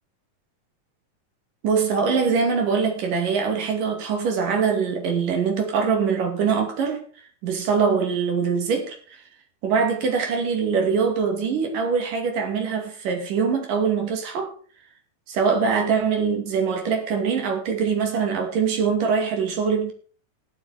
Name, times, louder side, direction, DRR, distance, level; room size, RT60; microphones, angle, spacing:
voice 1, 1.6-7.0 7.4-9.2 9.6-14.5 15.3-19.9, right 5 dB, 85° right, 4.2 m, -23 dB
14.0 x 11.0 x 4.9 m
omnidirectional pair, 3.7 m